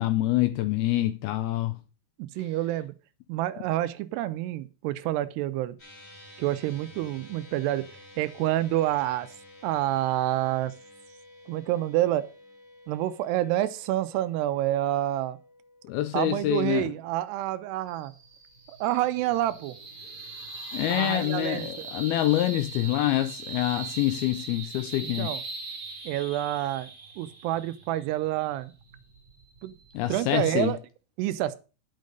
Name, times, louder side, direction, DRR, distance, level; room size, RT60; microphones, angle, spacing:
voice 1, 0.0-1.8 15.8-16.9 20.7-25.3 29.9-30.7, left 15 dB, 80° left, 2.2 m, -26 dB
voice 2, 2.2-2.9 3.3-5.8 6.4-7.9 8.2-9.3 9.6-10.7 11.5-12.3 12.9-15.4 16.1-18.1 18.7-19.8 20.9-21.9 25.0-25.4 26.1-26.9 27.2-28.7 29.6-29.7 30.1-30.8 31.2-31.6, right 14 dB, 80° right, 2.6 m, -28 dB
sound 1, 5.8-18.3, left 2 dB, 20° left, 3.8 m, -52 dB
sound 2, 17.9-30.5, right 4 dB, 30° right, 1.6 m, -41 dB
10.5 x 6.6 x 5.1 m
omnidirectional pair, 5.0 m